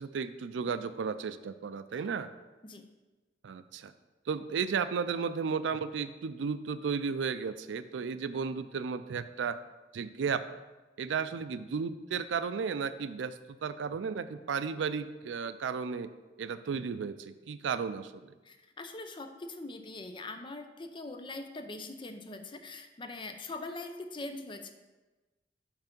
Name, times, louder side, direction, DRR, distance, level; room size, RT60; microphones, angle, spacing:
voice 1, 0.0-2.3 3.4-3.9 4.3-9.6 9.9-10.4 11.0-16.1 16.4-18.3, right 6 dB, 85° right, 13 dB, 0.4 m, -34 dB
voice 2, 18.4-24.7, left 2 dB, 25° left, 7 dB, 0.5 m, -42 dB
5.8 x 5.6 x 5.2 m, 1.2 s
head